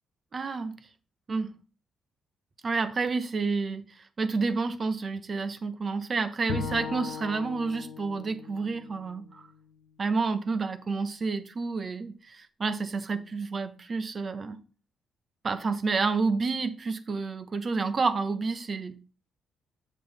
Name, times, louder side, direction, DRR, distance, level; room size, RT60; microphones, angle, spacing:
voice 1, 0.3-0.8 1.3-1.5 2.6-9.5 10.0-14.6 15.4-18.9, right 4 dB, 40° right, 1.2 m, -29 dB
Bowed string instrument, 6.5-9.8, left 6 dB, 90° left, 1.2 m, -38 dB
7.9 x 7.3 x 3.6 m
cardioid pair, 90°, 0 cm